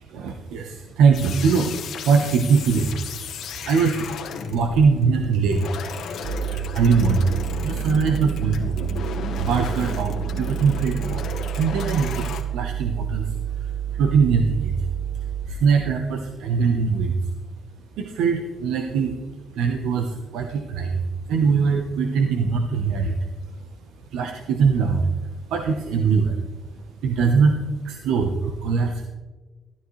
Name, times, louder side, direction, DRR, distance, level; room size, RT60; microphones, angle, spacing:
voice 1, 0.1-1.7 2.0-2.9 3.6-4.1 4.3-5.7 6.5-7.3 7.6-8.9 9.4-11.3 11.5-14.9 15.4-17.1 18.0-19.2 19.5-21.0 21.3-23.1 24.1-25.1 25.5-26.4 27.0-29.1, right 5 dB, 90° right, 4 dB, 0.9 m, -22 dB
sound 1, 1.1-12.4, left 6 dB, 75° left, 1.3 m, -34 dB
sound 2, 6.2-15.5, right 10 dB, 45° right, 2.9 m, -29 dB
13.0 x 12.0 x 3.2 m, 1.2 s
cardioid pair, 90°, 0 cm